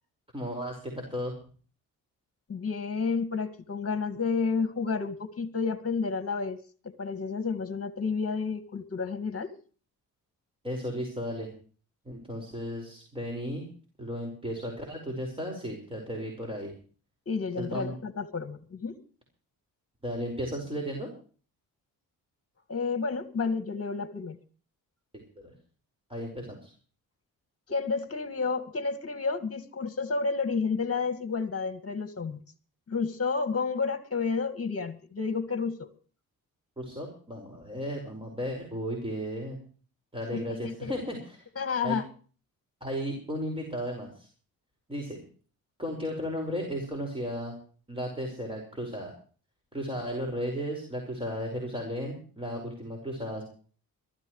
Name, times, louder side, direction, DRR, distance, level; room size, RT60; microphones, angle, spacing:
voice 1, 0.3-1.3 10.6-11.5 12.1-13.7 14.0-16.7 17.6-18.0 20.0-21.1 25.1-25.5 26.1-26.7 36.8-39.6 40.1-41.4 41.8-42.0 42.8-44.3 44.9-45.2 45.8-47.6 47.9-49.1 49.7-53.4, equal, 15° right, 0 dB, 5.3 m, -35 dB
voice 2, 2.5-6.6 6.8-9.5 17.3-19.0 22.7-24.4 27.7-32.4 32.9-35.9 40.3-41.0 41.6-42.1, left 5 dB, 35° left, 10 dB, 2.0 m, -30 dB
23.5 x 13.5 x 3.2 m, 0.42 s
supercardioid pair, 60°, 38 cm